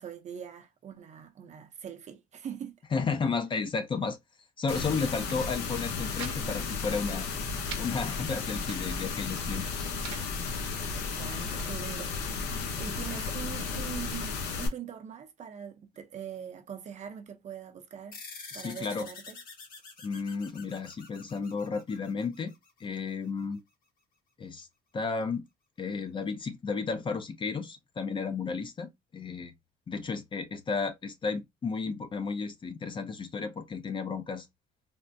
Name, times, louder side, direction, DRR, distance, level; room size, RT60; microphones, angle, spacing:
voice 1, 0.0-2.8 10.6-12.4 12.8-18.2 18.5-19.4, right 8 dB, 45° right, 0.6 m, -42 dB
voice 2, 2.9-4.2 4.6-7.3 7.8-9.8 18.5-19.1 20.0-22.5 22.8-23.6 24.4-24.7 24.9-25.4 25.8-29.5 29.9-34.5, left 4 dB, 30° left, 0.5 m, -33 dB
sound 1, 4.7-14.7, left 5 dB, 85° left, 0.8 m, -34 dB
sound 2, 5.0-5.4 5.7-6.4 6.7-6.8 7.1-7.9 8.4-9.0 9.7-10.3 10.9-11.7, right 8 dB, 85° right, 0.7 m, -45 dB
sound 3, 18.1-23.0, left 4 dB, 60° left, 1.2 m, -47 dB
3.5 x 2.0 x 2.6 m
cardioid pair, 110°, 17 cm